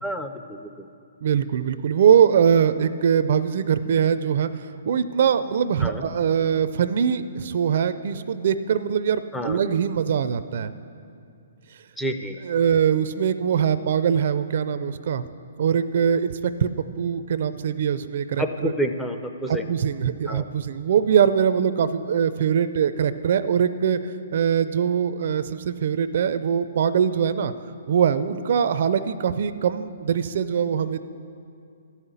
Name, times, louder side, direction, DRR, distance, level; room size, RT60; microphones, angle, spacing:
voice 1, 0.0-0.9 5.8-6.0 9.3-9.6 12.0-12.4 18.4-19.7 20.3-20.5, equal, 5° left, 5 dB, 0.5 m, -29 dB
voice 2, 1.2-10.7 12.4-15.2 15.6-16.7 17.0-18.7 19.5-27.5 27.9-31.0, right 8 dB, 55° right, 13 dB, 0.4 m, -22 dB
13.5 x 5.7 x 8.2 m, 2.5 s
hypercardioid pair, 150°, 0 cm